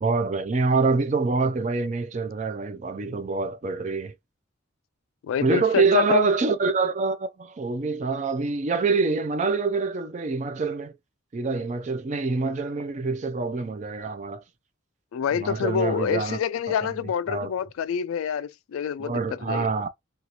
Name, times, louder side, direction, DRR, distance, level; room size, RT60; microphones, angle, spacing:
voice 1, 0.0-4.1 5.4-10.9 11.3-14.4 15.3-16.4 16.8-16.9 17.3-17.5 19.0-19.9, right 4 dB, 35° right, 0.3 m, -25 dB
voice 2, 5.2-6.2 15.1-19.7, left 7 dB, 90° left, 0.3 m, -27 dB
2.8 x 2.4 x 2.8 m
head